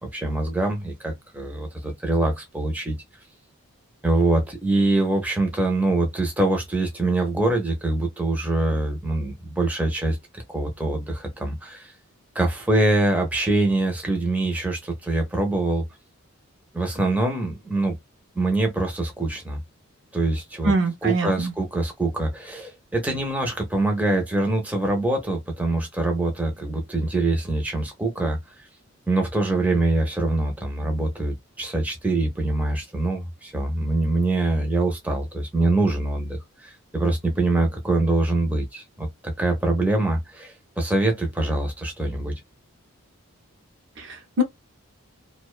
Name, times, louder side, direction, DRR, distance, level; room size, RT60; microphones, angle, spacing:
voice 1, 0.0-3.0 4.0-11.9 12.3-15.8 16.7-18.0 18.4-19.6 20.1-20.7 21.0-28.4 29.1-42.3, right 2 dB, 5° right, 0.5 m, -24 dB
voice 2, 20.6-21.5 44.0-44.4, right 1 dB, 55° right, 0.5 m, -24 dB
2.5 x 2.1 x 2.3 m
head